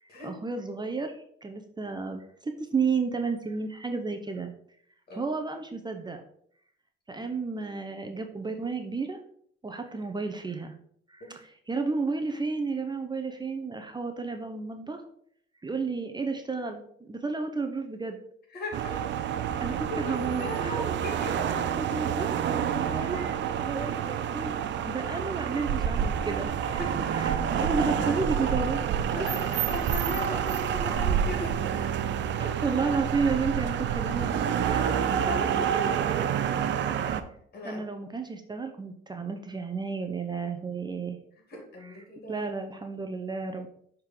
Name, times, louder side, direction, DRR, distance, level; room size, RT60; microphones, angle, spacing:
voice 1, 0.0-4.5 5.2-6.2 7.1-9.2 9.6-10.7 11.1-15.0 15.6-18.2 19.6-20.9 21.8-23.4 23.6-24.5 24.8-26.8 27.1-28.8 32.4-36.3 37.6-41.2 41.8-41.9 42.3-43.7, right 4 dB, 20° right, 5 dB, 0.7 m, -32 dB
voice 2, 18.5-19.0 20.0-21.6 23.8-23.9 26.7-27.0 27.5-27.7 28.0-28.1 29.1-31.8 37.5-37.8 41.5-42.5, left 1 dB, 55° left, 0 dB, 2.6 m, -38 dB
sound 1, 18.7-37.2, right 8 dB, 65° right, 0.6 m, -28 dB
6.5 x 3.7 x 4.4 m, 0.66 s
cardioid pair, 90°, 20 cm